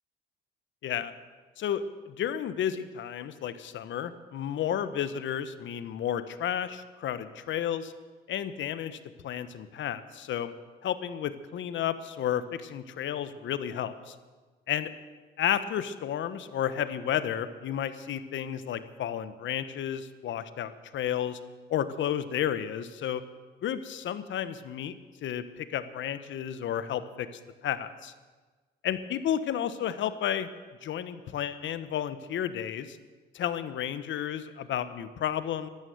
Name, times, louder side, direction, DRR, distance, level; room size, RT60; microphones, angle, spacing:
voice 1, 0.8-1.1 1.6-7.9 8.3-9.0 9.2-10.5 10.8-14.1 14.7-14.9 15.4-21.4 21.7-23.2 23.6-24.9 25.2-27.3 27.6-28.1 28.8-30.5 30.8-33.0 33.3-35.7, left 10 dB, 70° left, 13 dB, 1.1 m, -32 dB
13.5 x 13.0 x 7.9 m, 1.3 s
cardioid pair, 90°, 20 cm